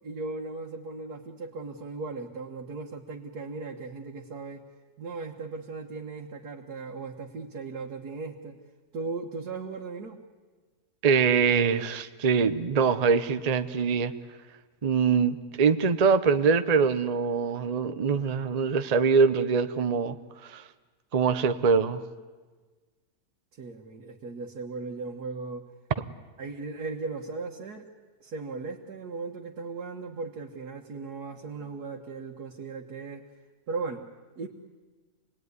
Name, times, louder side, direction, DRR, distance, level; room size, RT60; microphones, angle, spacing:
voice 1, 0.0-4.6 5.0-8.6 8.9-10.2 23.5-25.7 26.4-27.9 28.2-33.3 33.7-34.0 34.4-34.5, right 4 dB, 85° right, 0 dB, 2.0 m, -37 dB
voice 2, 11.0-14.1 14.8-20.2 20.4-20.6 21.1-22.0, right 5 dB, 35° right, 10 dB, 0.8 m, -23 dB
27.5 x 19.5 x 9.6 m, 1.4 s
omnidirectional pair, 1.6 m